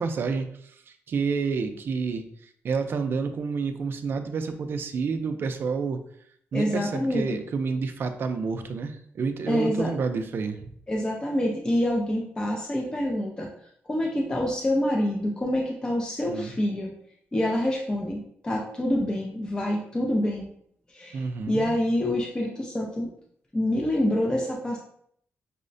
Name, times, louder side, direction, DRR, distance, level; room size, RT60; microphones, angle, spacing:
voice 1, 0.0-6.0 6.5-10.7 16.3-16.6 21.1-21.7, right 5 dB, 50° right, 7 dB, 0.3 m, -29 dB
voice 2, 6.5-7.4 9.5-9.9 10.9-13.5 13.9-16.9 17.3-20.5 20.9-23.1 23.5-24.8, left 1 dB, 15° left, -1 dB, 0.4 m, -26 dB
5.4 x 2.1 x 2.5 m, 0.66 s
wide cardioid pair, 160°, 5 cm